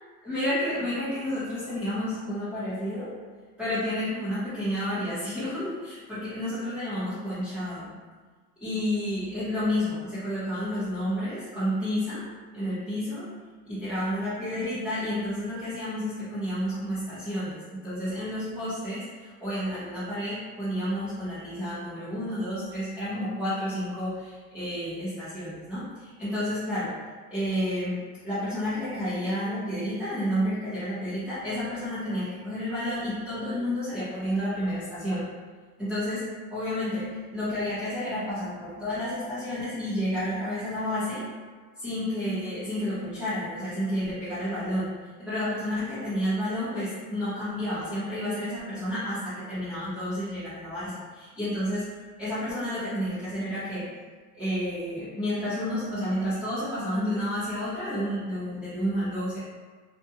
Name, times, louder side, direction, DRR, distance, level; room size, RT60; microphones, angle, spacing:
voice 1, 0.2-3.1 3.6-7.9 8.6-12.2 12.5-13.3 13.7-26.9 27.3-35.3 35.8-41.2 41.8-44.9 45.2-51.9 52.2-53.8 54.4-59.4, equal, 5° right, -15 dB, 0.5 m, -30 dB
2.6 x 2.4 x 2.6 m, 1.5 s
cardioid pair, 160°, 41 cm